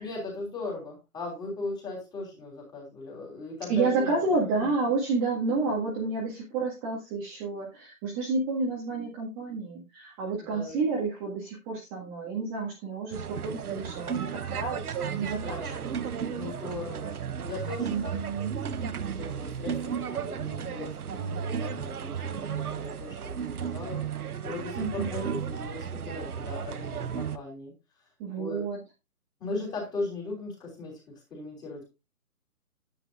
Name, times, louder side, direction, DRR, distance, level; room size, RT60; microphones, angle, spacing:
voice 1, 0.0-4.7 10.5-10.8 15.3-15.9 16.3-17.2 17.4-18.2 18.9-24.0 24.4-27.7 28.4-28.6 29.4-31.0 31.3-31.9, left 3 dB, 10° left, -2 dB, 3.3 m, -38 dB
voice 2, 3.7-15.7 17.8-18.5 24.8-25.3 28.2-28.8, right 3 dB, 15° right, -4 dB, 1.8 m, -30 dB
sound 1, 13.1-27.4, right 7 dB, 75° right, 0.9 m, -34 dB
10.0 x 9.8 x 2.4 m, 0.25 s
hypercardioid pair, 155°, 45 cm